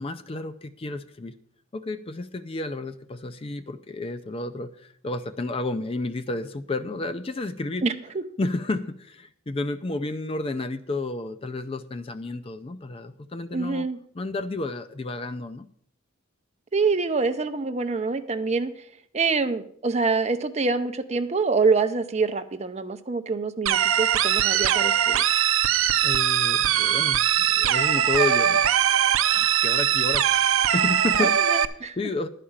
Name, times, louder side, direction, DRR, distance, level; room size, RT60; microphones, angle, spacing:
voice 1, 0.0-1.4 1.7-7.8 8.4-13.9 14.1-15.7 26.0-28.7 29.3-30.3 30.7-31.4 32.0-32.3, left 2 dB, 30° left, 11 dB, 0.4 m, -31 dB
voice 2, 7.8-8.2 13.5-14.0 16.7-18.7 19.1-25.2 31.2-32.0, right 4 dB, 30° right, 9 dB, 0.6 m, -26 dB
sound 1, 23.7-31.7, right 10 dB, 80° right, 0.5 m, -21 dB
11.0 x 5.0 x 7.2 m, 0.65 s
head